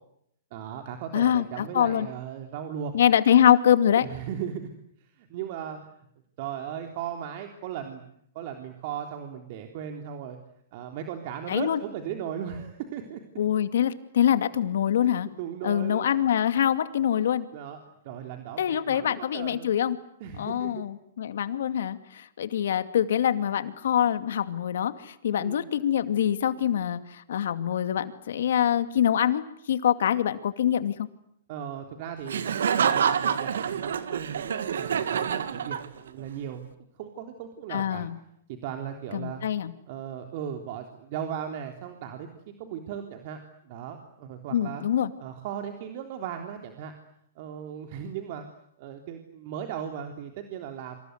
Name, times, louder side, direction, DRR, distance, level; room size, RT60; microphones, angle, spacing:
voice 1, 0.5-2.9 4.0-4.6 5.0-6.1 6.4-8.0 8.3-10.4 10.7-13.2 15.4-16.1 17.5-19.8 20.2-20.7 25.3-25.7 31.5-32.4 32.7-38.0 38.5-39.4 39.9-42.3 42.6-44.8 45.2-46.9 47.4-48.4 48.8-51.0, right 9 dB, 50° right, 5 dB, 3.5 m, -37 dB
voice 2, 1.1-2.1 2.9-4.1 11.5-11.8 13.4-15.3 15.6-17.5 18.6-20.0 20.4-31.1 37.7-38.2 39.1-39.7 44.5-45.1, left 10 dB, 70° left, 10 dB, 2.4 m, -24 dB
Laughter, 32.3-36.2, right 7 dB, 75° right, 2.2 m, -27 dB
27.5 x 26.5 x 8.2 m, 0.73 s
hypercardioid pair, 135°, 0 cm